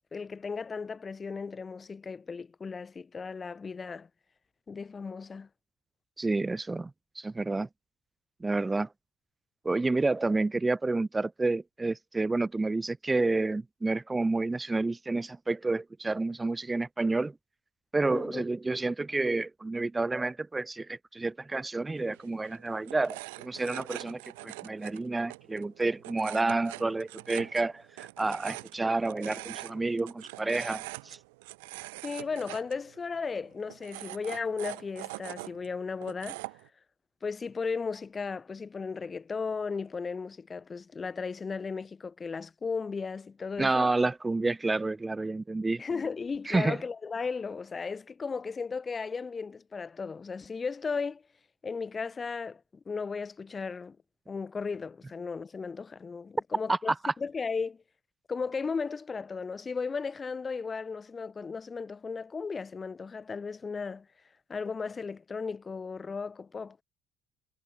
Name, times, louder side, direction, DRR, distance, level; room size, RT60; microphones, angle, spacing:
voice 1, 0.1-4.1 4.7-5.5 18.1-18.4 32.0-36.4 37.2-43.9 45.8-51.2 51.6-54.0 54.3-57.8 58.3-64.1 64.5-66.8, left 5 dB, 30° left, 2.6 m, -35 dB
voice 2, 6.2-6.9 7.2-7.7 8.4-8.9 9.6-17.3 17.9-31.2 43.6-45.8 46.5-46.8 56.7-56.8 57.0-57.1, right 3 dB, 20° right, 0.3 m, -29 dB
sound 1, 22.0-36.7, right 25 dB, 85° right, 1.2 m, -44 dB
supercardioid pair, 70°, 0 cm